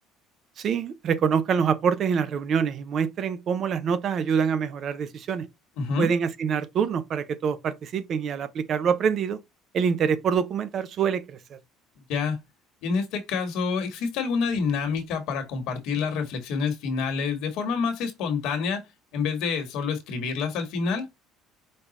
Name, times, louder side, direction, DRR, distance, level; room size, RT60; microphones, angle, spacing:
voice 1, 0.6-5.5 6.0-9.4 9.7-11.6, right 7 dB, 45° right, 0.5 m, -25 dB
voice 2, 5.8-6.1 12.1-12.4 12.8-18.8 19.1-21.1, left 5 dB, 75° left, 1.5 m, -27 dB
5.3 x 2.3 x 4.1 m
cardioid pair, 125°, 0 cm